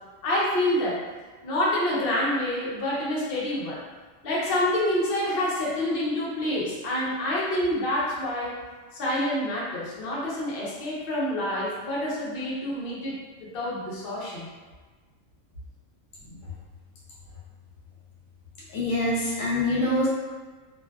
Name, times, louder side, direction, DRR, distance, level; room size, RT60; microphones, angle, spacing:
voice 1, 0.2-1.0 1.4-3.8 4.2-8.5 8.9-14.5, left 1 dB, 55° left, -6 dB, 0.7 m, -27 dB
voice 2, 18.7-20.1, left 1 dB, 70° left, -6 dB, 1.0 m, -25 dB
2.5 x 2.3 x 2.2 m, 1.4 s
omnidirectional pair, 1.4 m